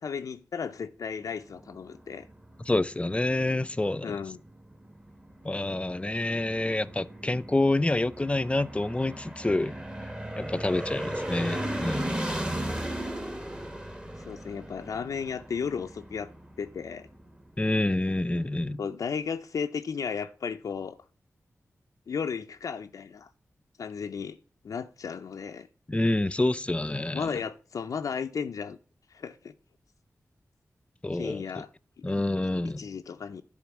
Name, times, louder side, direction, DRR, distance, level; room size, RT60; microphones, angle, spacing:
voice 1, 0.0-2.3 4.0-4.4 14.2-16.3 16.6-17.1 18.8-21.0 22.1-23.3 23.8-24.4 24.6-25.7 27.1-28.8 29.1-29.5 31.1-31.7 32.0-32.1 32.6-33.4, left 6 dB, 85° left, 0.5 m, -34 dB
sound 1, 1.3-17.6, right 1 dB, 15° right, 1.5 m, -37 dB
voice 2, 2.7-4.2 5.4-9.8 10.4-12.1 17.6-18.8 25.9-27.3 31.0-31.6 32.0-32.8, left 2 dB, 20° left, 0.5 m, -27 dB
10.5 x 3.9 x 7.2 m
cardioid pair, 60°, 6 cm